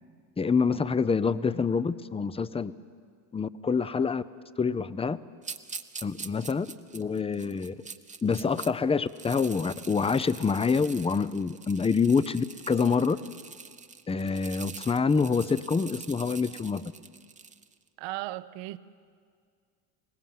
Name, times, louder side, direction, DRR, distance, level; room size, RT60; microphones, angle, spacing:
voice 1, 0.4-2.7 3.3-4.2 4.6-5.2 6.0-6.7 6.9-7.7 8.2-13.2 14.1-16.8, left 5 dB, 10° left, 15 dB, 0.6 m, -26 dB
sound 1, 5.4-8.7 9.1-17.7, right 5 dB, 15° right, 0.9 m, -44 dB
voice 2, 18.0-18.8, right 17 dB, 60° right, 15 dB, 0.9 m, -36 dB
22.0 x 18.5 x 7.7 m, 2.1 s
hypercardioid pair, 80°, 49 cm